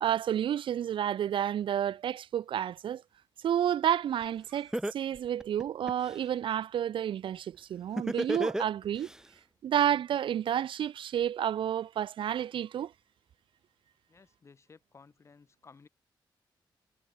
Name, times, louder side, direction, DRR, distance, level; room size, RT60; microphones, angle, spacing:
voice 1, 0.0-3.0 3.4-9.1 9.6-12.9, right 10 dB, 75° right, 0.4 m, -30 dB
Laughter, 4.2-4.3 4.7-6.2 8.0-9.2, right 1 dB, 5° right, 0.9 m, -32 dB
voice 2, 14.1-15.9, left 4 dB, 35° left, 6.5 m, -57 dB
wide cardioid pair, 175°, 9 cm